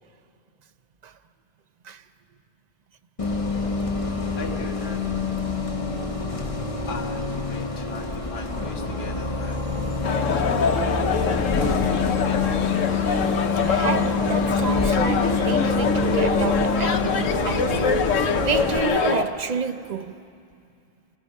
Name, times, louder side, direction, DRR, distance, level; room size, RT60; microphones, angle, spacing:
Bus, 3.2-18.8, left 3 dB, 30° left, 1.1 m, -26 dB
voice 1, 4.4-5.0 6.9-9.6 10.0-12.5, left 4 dB, 55° left, 1.6 m, -39 dB
sound 1, 10.0-19.2, left 5 dB, 85° left, 1.3 m, -24 dB
voice 2, 13.6-17.9 18.4-20.2, right 6 dB, 45° right, 0.6 m, -29 dB
28.0 x 17.5 x 5.4 m
omnidirectional pair, 1.3 m